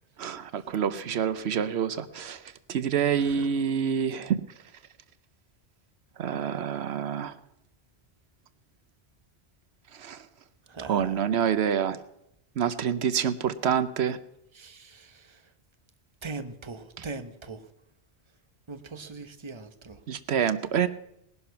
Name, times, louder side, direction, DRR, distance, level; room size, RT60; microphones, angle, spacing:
voice 1, 0.2-2.4 2.7-4.4 6.2-7.3 9.9-10.2 10.9-12.0 12.6-14.2 20.1-20.9, right 8 dB, 80° right, 14 dB, 1.0 m, -27 dB
voice 2, 3.1-3.5 10.7-11.3 14.5-15.5 16.2-17.7 18.7-20.0, right 3 dB, 30° right, 9 dB, 1.0 m, -41 dB
19.5 x 11.0 x 5.8 m, 0.79 s
omnidirectional pair, 1.1 m